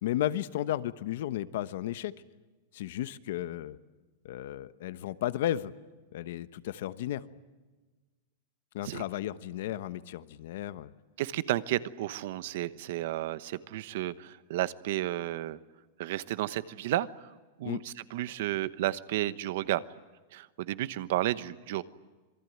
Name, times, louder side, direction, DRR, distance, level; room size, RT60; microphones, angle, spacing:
voice 1, 0.0-2.1 2.7-3.8 4.2-5.7 6.1-7.2 8.7-10.9 17.6-17.8, left 13 dB, 60° left, 14 dB, 1.1 m, -34 dB
voice 2, 11.2-15.6 16.0-17.1 17.6-19.8 20.3-21.8, right 14 dB, 55° right, 16 dB, 1.0 m, -32 dB
27.0 x 22.5 x 9.4 m, 1.3 s
supercardioid pair, 170°, 0 cm